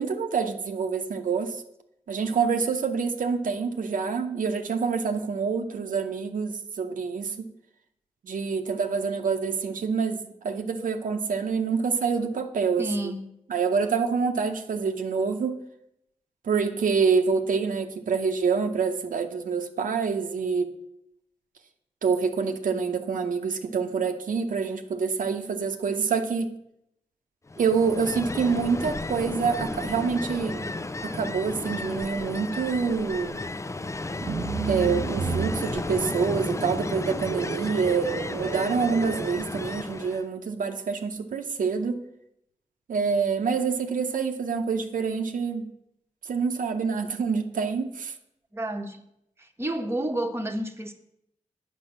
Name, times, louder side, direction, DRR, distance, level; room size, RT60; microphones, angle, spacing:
voice 1, 0.0-1.6 2.1-7.5 8.2-13.1 13.5-15.6 16.4-20.7 22.0-26.5 27.6-30.7 31.0-33.4 34.6-42.0 42.9-45.7 46.3-48.1, right 5 dB, 90° right, 4 dB, 0.8 m, -26 dB
voice 2, 12.8-13.3 48.5-49.0 49.4-50.9, right 1 dB, 20° right, 4 dB, 1.1 m, -30 dB
Ocean, 27.5-40.3, left 2 dB, 20° left, 0.5 m, -33 dB
sound 1, 34.2-39.3, right 6 dB, 55° right, 0.4 m, -33 dB
8.2 x 5.3 x 7.3 m, 0.78 s
cardioid pair, 55°, 13 cm